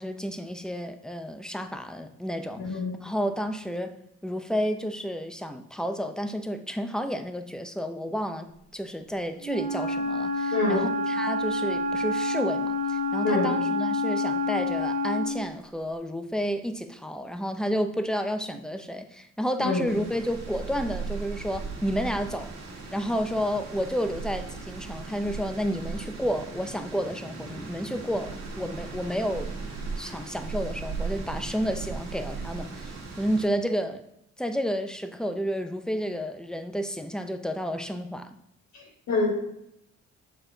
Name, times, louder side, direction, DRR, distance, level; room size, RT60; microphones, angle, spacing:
voice 1, 0.0-3.9 4.2-22.5 22.9-29.6 30.0-34.0 34.4-38.3, equal, ahead, 7 dB, 0.7 m, -31 dB
voice 2, 2.6-3.0 10.5-10.9 13.2-13.6 19.6-19.9 38.7-39.4, left 3 dB, 65° left, -3 dB, 1.4 m, -26 dB
Wind instrument woodwind instrument, 9.4-15.5, left 2 dB, 25° right, 0.9 m, -28 dB
sound 1, 19.8-33.5, right 4 dB, 60° right, 1.7 m, -37 dB
7.0 x 4.2 x 3.8 m, 0.78 s
cardioid pair, 90°, 30 cm